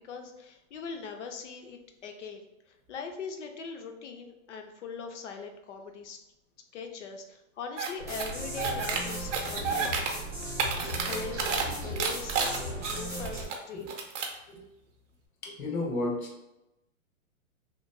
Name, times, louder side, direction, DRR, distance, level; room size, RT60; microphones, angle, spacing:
voice 1, 0.0-6.2 6.7-10.2 11.0-14.0, left 5 dB, 60° left, 5 dB, 0.5 m, -41 dB
sound 1, 7.8-7.9 8.2-9.0 9.3-10.1 10.4-11.6 12.0-13.5 13.9-14.4, right 5 dB, 60° right, 0.5 m, -30 dB
sound 2, 8.0-13.5, right 1 dB, 15° right, 0.4 m, -37 dB
voice 2, 15.4-16.4, left 2 dB, 90° left, -1 dB, 1.0 m, -33 dB
2.9 x 2.0 x 2.5 m, 0.91 s
hypercardioid pair, 175°, 41 cm